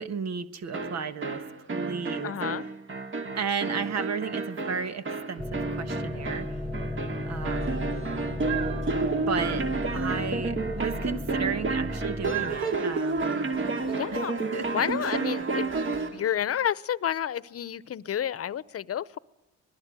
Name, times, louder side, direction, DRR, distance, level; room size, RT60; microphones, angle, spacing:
voice 1, 0.0-1.4 1.7-2.4 3.3-6.6 7.3-7.9 9.3-9.7 9.9-13.4 14.1-14.2 14.5-15.2, right 6 dB, 60° right, 11 dB, 1.4 m, -34 dB
sound 1, 0.7-16.2, right 3 dB, 40° right, 2.5 m, -30 dB
voice 2, 2.2-2.7 13.9-14.4 14.7-15.7 16.1-19.2, left 10 dB, 50° left, 19 dB, 0.9 m, -30 dB
sound 2, 5.4-12.6, left 1 dB, ahead, 1.8 m, -35 dB
25.5 x 20.5 x 9.2 m, 0.91 s
cardioid pair, 90°, 30 cm